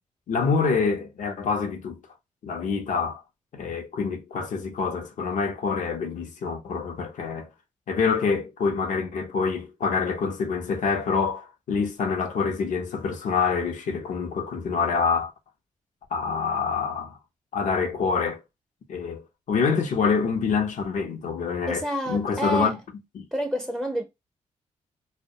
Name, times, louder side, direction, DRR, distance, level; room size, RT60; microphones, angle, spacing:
voice 1, 0.3-2.0 2.4-3.2 3.5-7.5 7.9-15.3 16.1-17.2 17.5-18.4 18.9-22.7 23.2-23.3, left 5 dB, 65° left, 0.6 m, -26 dB
voice 2, 21.7-22.8 23.3-24.0, equal, 5° right, 0.5 m, -28 dB
2.2 x 2.1 x 2.7 m
supercardioid pair, 55°, 14 cm